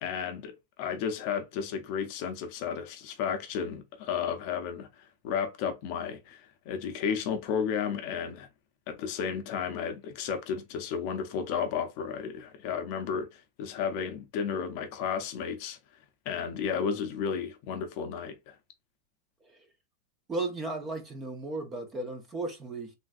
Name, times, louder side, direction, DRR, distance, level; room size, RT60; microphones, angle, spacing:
voice 1, 0.0-4.9 5.2-8.5 8.9-15.8 16.3-18.5, left 7 dB, 45° left, 0.5 m, -33 dB
voice 2, 20.3-22.9, right 2 dB, 15° right, 0.5 m, -35 dB
3.2 x 2.5 x 2.4 m
supercardioid pair, 165°, 0 cm